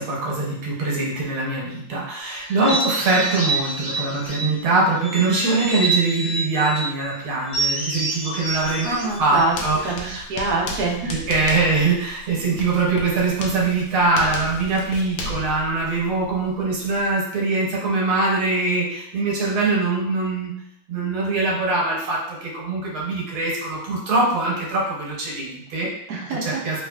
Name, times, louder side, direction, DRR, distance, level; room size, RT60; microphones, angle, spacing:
voice 1, 0.0-8.9 9.2-10.2 11.0-20.5 20.9-25.9 26.4-26.9, right 3 dB, 80° right, -3 dB, 1.7 m, -23 dB
sound 1, 2.5-4.6 5.0-6.9 7.5-10.0, right 3 dB, 40° left, 1.6 m, -27 dB
Writing, 8.5-17.1, left 1 dB, 75° left, 1.2 m, -35 dB
voice 2, 8.8-9.6 9.8-11.1 11.4-11.6 26.1-26.6, right 3 dB, 60° right, -2 dB, 1.1 m, -25 dB
3.5 x 3.2 x 2.3 m, 0.74 s
omnidirectional pair, 2.3 m